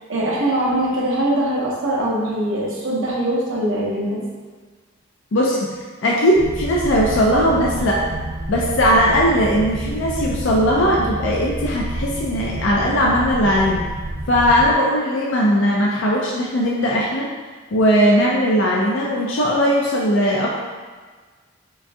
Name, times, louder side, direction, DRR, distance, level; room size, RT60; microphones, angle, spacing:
voice 1, 0.1-4.2, right 1 dB, 70° right, -4 dB, 0.9 m, -22 dB
voice 2, 5.3-5.7 6.0-8.0 8.5-13.8 14.3-17.3 17.7-20.5, equal, 65° left, -3 dB, 0.5 m, -18 dB
sound 1, 6.4-14.7, right 1 dB, 30° right, 0.4 m, -29 dB
5.1 x 2.3 x 2.6 m, 1.5 s
head